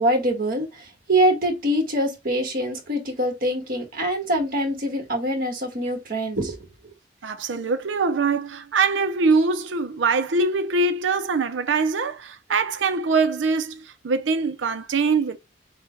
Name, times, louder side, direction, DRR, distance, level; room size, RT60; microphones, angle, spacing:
voice 1, 0.0-6.7, right 1 dB, 55° right, 1.5 m, -24 dB
voice 2, 7.2-15.4, right 4 dB, 80° right, 0.5 m, -23 dB
6.4 x 2.2 x 3.8 m
head